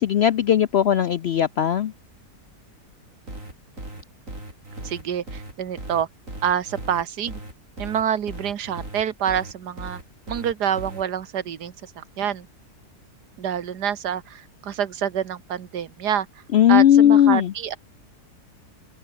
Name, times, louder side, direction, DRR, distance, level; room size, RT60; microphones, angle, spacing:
voice 1, 0.0-1.9 16.5-17.5, left 10 dB, 70° left, 0.6 m, -17 dB
sound 1, 3.3-11.0, right 1 dB, 50° right, 7.8 m, -37 dB
voice 2, 4.8-6.1 6.4-7.4 7.8-10.0 10.3-12.5 13.4-16.4 16.7-17.8, right 9 dB, 85° right, 1.8 m, -27 dB
open air
omnidirectional pair, 1.7 m